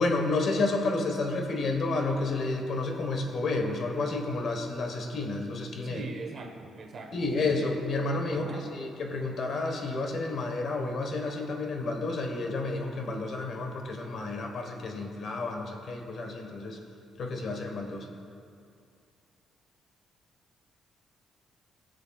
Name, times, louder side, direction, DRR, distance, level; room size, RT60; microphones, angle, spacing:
voice 1, 0.0-6.0 7.1-16.8 17.2-18.1, left 3 dB, 60° left, 3 dB, 1.3 m, -30 dB
voice 2, 5.8-7.5 8.3-8.7, right 3 dB, 55° right, 2 dB, 1.2 m, -42 dB
17.5 x 6.7 x 2.4 m, 2.4 s
cardioid pair, 90°, 0 cm